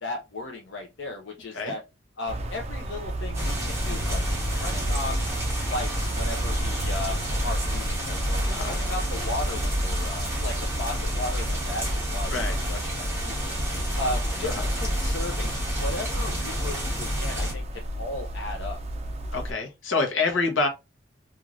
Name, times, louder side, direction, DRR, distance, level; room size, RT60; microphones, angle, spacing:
voice 1, 0.0-1.8 2.2-4.2 4.6-5.2 5.6-13.4 13.9-18.8, left 2 dB, 65° left, 0.6 m, -35 dB
sound 1, 2.3-19.5, equal, 35° right, 0.4 m, -35 dB
sound 2, 3.3-17.5, equal, 15° right, 1.1 m, -28 dB
voice 2, 8.4-8.8 12.3-12.6 14.4-14.7 19.3-20.7, left 3 dB, 90° left, 0.9 m, -27 dB
3.1 x 2.5 x 2.5 m
head